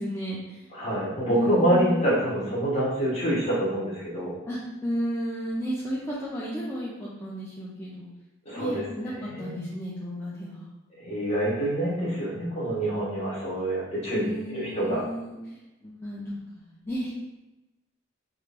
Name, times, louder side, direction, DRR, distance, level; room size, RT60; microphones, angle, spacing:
voice 1, 0.0-0.7 1.3-2.1 4.5-8.1 8.6-10.7 14.1-17.1, equal, 10° left, -8 dB, 0.4 m, -33 dB
voice 2, 0.7-4.3 8.4-9.6 11.0-15.0, right 1 dB, 35° left, -6 dB, 1.0 m, -26 dB
3.1 x 2.4 x 3.3 m, 1.0 s
head